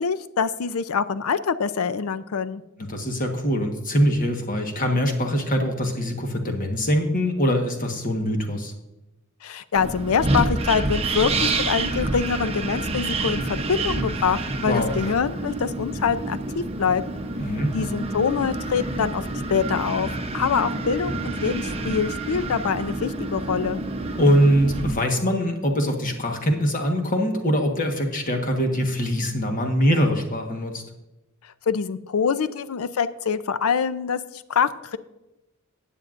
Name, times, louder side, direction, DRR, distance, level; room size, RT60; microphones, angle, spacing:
voice 1, 0.0-2.6 9.4-17.0 17.7-20.1 20.3-23.8 31.7-35.0, left 6 dB, 75° left, 13 dB, 0.5 m, -25 dB
voice 2, 2.9-8.7 14.6-14.9 17.4-17.7 24.2-30.8, equal, 40° left, 3 dB, 1.3 m, -23 dB
Wind, 9.7-24.9, right 2 dB, 25° right, 0.8 m, -28 dB
15.0 x 9.1 x 2.5 m, 0.99 s
head